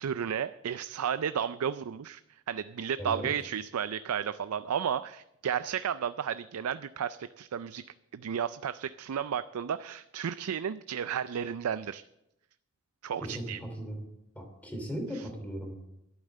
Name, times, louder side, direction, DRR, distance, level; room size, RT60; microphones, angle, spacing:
voice 1, 0.0-7.8 8.1-12.0 13.0-13.6 15.1-15.2, right 8 dB, 85° right, 13 dB, 0.4 m, -33 dB
voice 2, 3.0-3.3 13.2-14.0 14.3-15.7, equal, 5° left, 3 dB, 3.1 m, -37 dB
11.5 x 8.9 x 7.5 m, 0.86 s
head